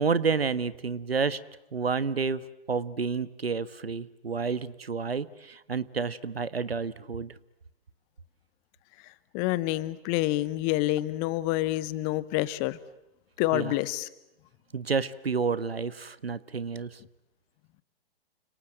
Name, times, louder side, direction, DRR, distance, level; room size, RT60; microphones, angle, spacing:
voice 1, 0.0-1.4 1.7-2.4 2.7-7.4 13.5-13.8 14.7-17.0, right 5 dB, 75° right, 17 dB, 1.4 m, -30 dB
voice 2, 9.3-12.8 13.4-14.1, left 17 dB, 25° left, 18 dB, 1.1 m, -27 dB
29.5 x 26.5 x 7.5 m, 0.84 s
figure-of-eight pair, 115°, 30 cm